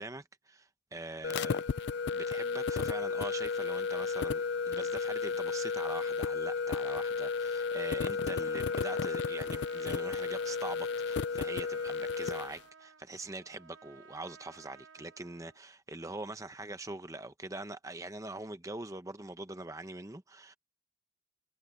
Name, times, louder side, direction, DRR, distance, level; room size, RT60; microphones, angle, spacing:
voice 1, 0.0-1.6 2.1-20.6, right 2 dB, 15° right, 0.8 m, -43 dB
sound 1, 1.2-12.6, left 5 dB, 60° left, 0.3 m, -33 dB
Trumpet, 8.0-15.6, right 6 dB, 70° right, 1.1 m, -57 dB
head